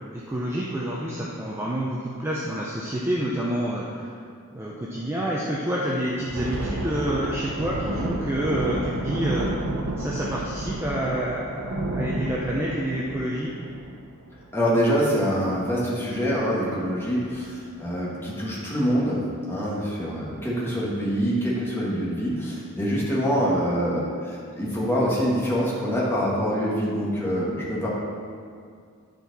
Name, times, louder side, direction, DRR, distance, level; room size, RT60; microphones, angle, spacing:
voice 1, 0.0-4.1 4.5-9.5 10.0-13.5, right 1 dB, 10° right, -5 dB, 0.5 m, -28 dB
Thunder, 6.1-15.2 15.5-15.7 16.1-16.4 17.0-17.4, right 1 dB, 80° right, 0.7 m, -31 dB
voice 2, 14.5-27.9, equal, 10° left, -6 dB, 1.4 m, -25 dB
10.5 x 4.3 x 4.0 m, 2.2 s
head